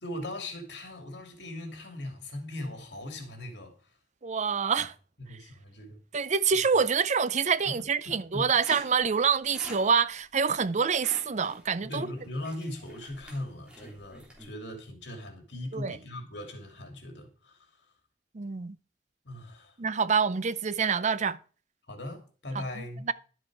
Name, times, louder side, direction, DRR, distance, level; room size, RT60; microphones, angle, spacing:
voice 1, 0.0-3.9 5.2-6.0 7.6-7.8 8.0-8.5 11.9-17.9 19.2-19.8 21.9-23.1, left 1 dB, 65° left, 2.6 m, -39 dB
voice 2, 4.2-4.9 6.1-12.1 15.7-16.0 18.3-18.8 19.8-21.4, right 6 dB, 40° right, 0.5 m, -26 dB
sound 1, 8.6-14.5, equal, 5° right, 3.3 m, -47 dB
11.5 x 7.7 x 4.8 m
head